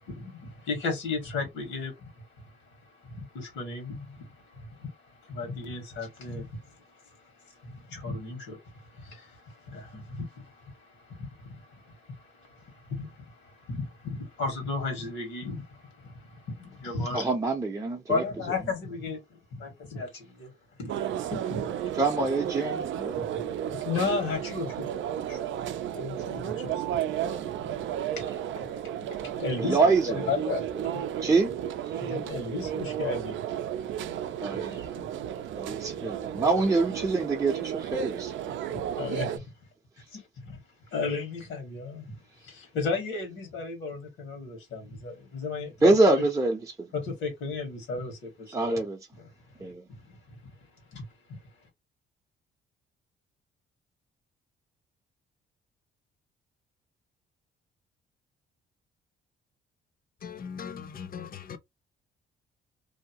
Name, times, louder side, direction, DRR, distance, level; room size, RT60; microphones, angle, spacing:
voice 1, 0.0-17.3 18.1-19.2 19.6-20.5 20.8-21.7 23.1-25.4 25.9-27.6 28.1-28.2 28.5-28.7 29.2-29.8 30.3-30.6 30.9-31.2 32.0-33.4 34.5-34.6 34.9-35.1 38.7-39.3 40.1-40.6 40.9-46.2 46.9-48.8 50.1-50.5 50.9-51.0 51.3-51.4, left 4 dB, 80° left, 1.4 m, -35 dB
voice 2, 17.1-18.2 21.9-23.2 29.6-30.3 31.2-31.5 31.9-32.1 34.4-34.9 35.6-37.5 37.9-38.3 45.8-46.9 48.5-49.0 49.6-49.8, right 3 dB, 15° right, 0.6 m, -25 dB
sound 1, 20.9-39.4, right 10 dB, 75° right, 0.5 m, -33 dB
voice 3, 60.2-61.6, left 7 dB, 50° left, 0.6 m, -39 dB
2.7 x 2.0 x 2.8 m
cardioid pair, 90°, 20 cm